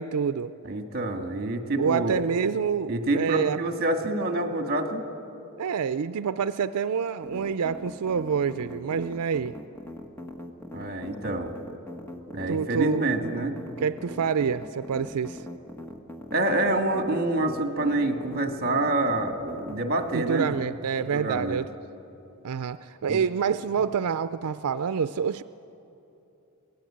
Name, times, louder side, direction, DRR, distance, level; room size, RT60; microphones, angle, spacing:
voice 1, 0.0-0.5 1.8-3.6 5.6-9.6 12.5-13.1 13.8-15.4 20.1-21.7 22.4-25.4, right 6 dB, 90° right, 12 dB, 0.5 m, -27 dB
voice 2, 0.6-2.2 2.9-5.0 10.7-11.5 12.3-13.6 16.3-20.6 21.0-21.6 23.1-23.2, right 2 dB, 45° right, 5 dB, 1.9 m, -27 dB
sound 1, 7.2-20.6, left 1 dB, 10° left, 1.5 m, -41 dB
23.0 x 18.5 x 8.7 m, 2.9 s
head